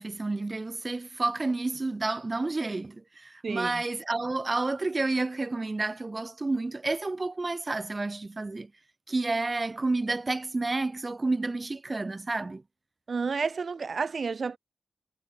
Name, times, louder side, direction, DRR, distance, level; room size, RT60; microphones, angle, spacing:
voice 1, 0.0-8.7 9.1-12.6, right 3 dB, 35° right, 1.1 m, -30 dB
voice 2, 3.4-3.8 13.1-14.6, right 5 dB, 60° right, 0.8 m, -30 dB
cardioid pair, 55°, 0 cm